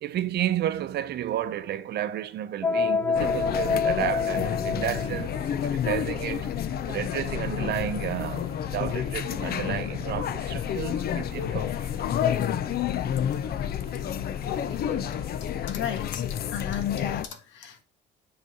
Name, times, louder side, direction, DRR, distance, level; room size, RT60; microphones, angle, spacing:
voice 1, 0.0-6.5 6.9-11.9, right 11 dB, 65° right, 0.7 m, -32 dB
sound 1, 2.6-5.4, left 5 dB, 10° left, 0.3 m, -27 dB
sound 2, 3.1-17.3, left 10 dB, 55° left, 0.6 m, -30 dB
sound 3, 4.5-15.6, left 1 dB, 25° left, 1.7 m, -44 dB
voice 2, 14.8-15.2 15.7-16.2 16.5-17.8, left 9 dB, 90° left, 1.6 m, -33 dB
7.8 x 4.1 x 5.3 m
cardioid pair, 140°, 19 cm